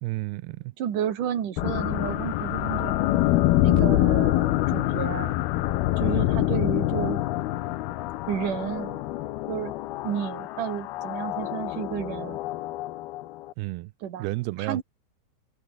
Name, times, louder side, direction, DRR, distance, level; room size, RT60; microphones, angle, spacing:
voice 1, 0.0-0.7 13.6-13.9 14.2-14.8, right 21 dB, 85° right, 2.6 m, -31 dB
voice 2, 0.8-3.0 3.6-5.3 6.0-7.2 8.3-9.0 9.5-9.7 10.0-12.4 14.0-14.3 14.6-14.8, right 9 dB, 60° right, 3.6 m, -31 dB
sound 1, 1.6-13.5, left 16 dB, 80° left, 2.9 m, -26 dB
omnidirectional pair, 4.5 m